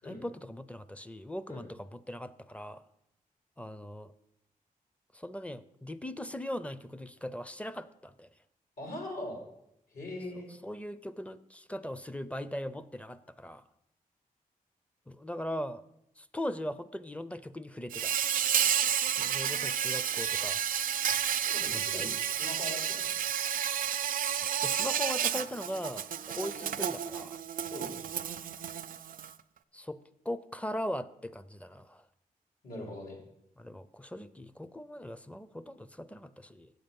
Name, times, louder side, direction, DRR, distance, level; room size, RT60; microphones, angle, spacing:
voice 1, 0.0-2.8 3.6-4.1 5.1-8.3 10.6-13.6 15.1-15.8 16.2-18.1 19.2-20.6 21.7-22.1 24.3-27.4 29.7-30.0 30.2-32.0 33.6-36.7, equal, 10° left, 15 dB, 0.5 m, -39 dB
voice 2, 8.8-9.4 9.9-10.5 21.4-23.1 27.7-27.9 32.6-33.2, left 1 dB, 75° left, 1 dB, 3.3 m, -41 dB
Insect, 17.9-29.3, right 9 dB, 70° right, 0.4 m, -31 dB
8.7 x 7.8 x 5.3 m, 0.79 s
cardioid pair, 70°, 15 cm